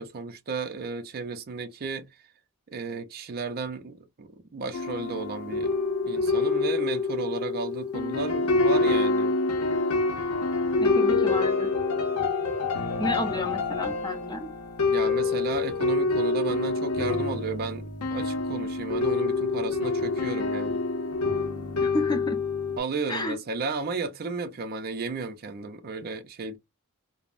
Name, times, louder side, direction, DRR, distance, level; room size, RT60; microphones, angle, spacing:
voice 1, 0.0-2.2 2.7-5.7 6.0-9.4 14.9-20.8 22.8-26.6, right 4 dB, 45° right, 0.5 m, -34 dB
sound 1, 4.7-22.8, left 3 dB, 80° left, 0.7 m, -26 dB
voice 2, 10.8-11.7 13.0-14.5 21.8-22.4 23.1-23.4, left 1 dB, 20° left, 0.5 m, -31 dB
3.4 x 2.0 x 2.4 m
head